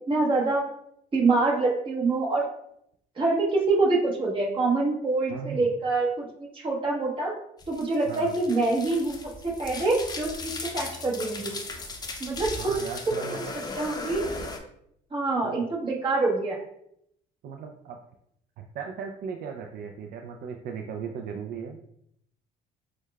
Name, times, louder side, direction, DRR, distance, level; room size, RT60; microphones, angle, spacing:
voice 1, 0.1-0.6 1.1-2.5 3.2-6.3 6.5-7.3 7.7-9.2 9.4-11.5 12.2-12.7 13.1-13.4 13.8-14.3 15.1-16.6, right 3 dB, 30° right, -3 dB, 1.1 m, -25 dB
voice 2, 5.3-5.7 8.1-8.3 12.6-13.4 15.4-15.6 17.4-18.0 18.6-21.8, right 6 dB, 65° right, 2 dB, 0.4 m, -37 dB
sound 1, 7.6-14.6, left 3 dB, 25° left, 0.5 m, -37 dB
6.2 x 2.2 x 2.3 m, 0.73 s
cardioid pair, 110°, 17 cm